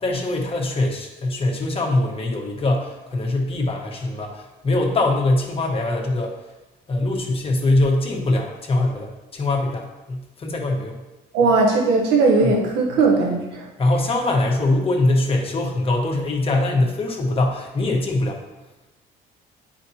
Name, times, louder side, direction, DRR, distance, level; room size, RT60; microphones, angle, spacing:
voice 1, 0.0-6.4 6.9-11.0 12.4-12.5 13.8-18.4, left 2 dB, 35° left, 1 dB, 1.4 m, -22 dB
voice 2, 11.3-13.7, right 3 dB, 85° right, -1 dB, 1.2 m, -18 dB
9.3 x 5.1 x 2.9 m, 1.1 s
cardioid pair, 110°, 17 cm